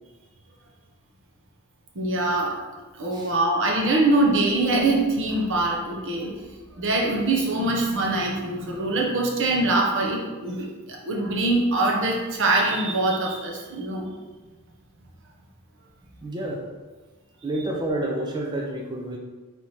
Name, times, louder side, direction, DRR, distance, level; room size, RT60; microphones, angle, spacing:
voice 1, 1.9-2.6 2.9-6.3 6.7-14.1, right 2 dB, 60° right, -1 dB, 0.8 m, -23 dB
voice 2, 16.2-16.6 17.4-19.2, right 1 dB, 20° right, -1 dB, 0.4 m, -29 dB
3.4 x 3.1 x 4.2 m, 1.3 s
head